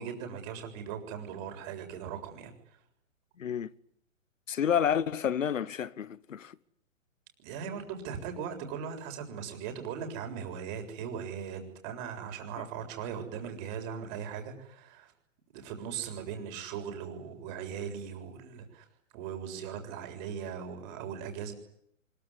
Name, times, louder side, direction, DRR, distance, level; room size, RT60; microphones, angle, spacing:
voice 1, 0.0-2.5 7.4-15.1 15.5-18.9 19.1-21.5, right 7 dB, 35° right, 7.1 m, -39 dB
voice 2, 3.4-3.7 4.5-6.5, left 8 dB, 75° left, 1.4 m, -29 dB
25.0 x 23.5 x 9.9 m
hypercardioid pair, 135°, 39 cm